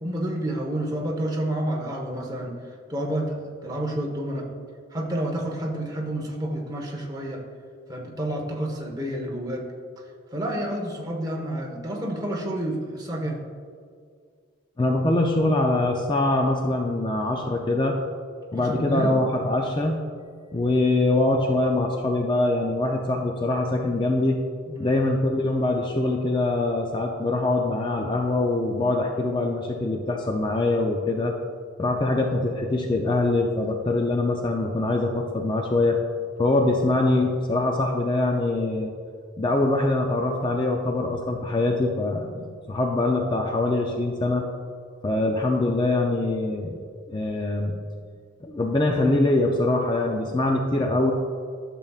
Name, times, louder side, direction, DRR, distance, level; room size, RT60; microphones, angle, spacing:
voice 1, 0.0-2.5 2.9-3.3 3.6-4.5 4.9-7.4 7.9-9.6 10.3-13.4 18.6-19.2 24.7-25.0, right 1 dB, 20° right, -1 dB, 1.1 m, -29 dB
voice 2, 14.8-17.9 18.5-20.0 20.5-24.4 24.8-31.3 31.8-36.0 36.4-38.9 39.4-44.4 45.0-46.8 47.1-47.8 48.4-51.1, left 2 dB, 25° left, 1 dB, 0.5 m, -23 dB
12.0 x 6.9 x 2.4 m, 2.1 s
head